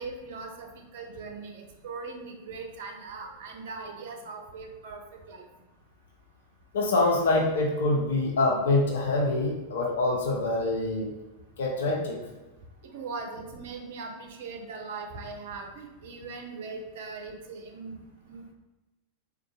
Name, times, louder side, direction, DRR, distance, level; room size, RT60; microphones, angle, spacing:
voice 1, 0.0-5.4 12.8-18.0 18.2-18.5, right 4 dB, 55° right, 3 dB, 0.5 m, -40 dB
voice 2, 6.7-11.1 11.6-12.2, left 2 dB, 60° left, -2 dB, 0.7 m, -25 dB
3.8 x 2.4 x 2.3 m, 1.1 s
figure-of-eight pair, 90°, 0 cm